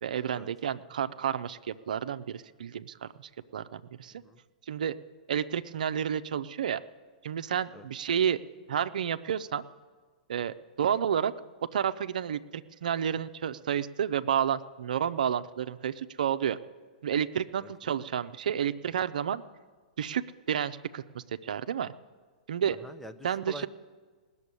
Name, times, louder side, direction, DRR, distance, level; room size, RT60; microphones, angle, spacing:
voice 1, 0.0-4.1 4.7-4.9 5.3-6.8 7.2-8.4 8.7-9.6 10.3-11.3 11.7-16.6 17.0-19.4 20.0-21.9 22.5-22.8 23.2-23.7, right 8 dB, 75° right, 11 dB, 0.6 m, -30 dB
voice 2, 22.8-23.7, equal, 5° left, 9 dB, 0.7 m, -44 dB
18.0 x 7.2 x 9.7 m, 1.5 s
hypercardioid pair, 120°, 4 cm